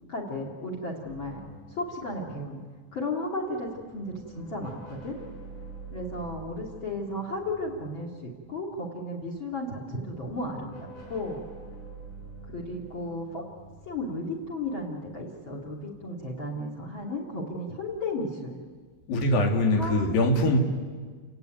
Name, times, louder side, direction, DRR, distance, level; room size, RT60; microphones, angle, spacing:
voice 1, 0.1-1.4 1.7-2.6 2.9-5.2 5.9-11.5 12.5-13.4 13.9-18.6 19.7-20.0, left 1 dB, 35° left, 3 dB, 3.3 m, -34 dB
sound 1, 1.0-3.3 3.6-8.8 9.7-15.2, right 3 dB, 90° left, 7.8 m, -47 dB
voice 2, 19.1-20.6, left 1 dB, 75° left, 3 dB, 4.1 m, -22 dB
29.5 x 17.5 x 9.3 m, 1.5 s
omnidirectional pair, 4.2 m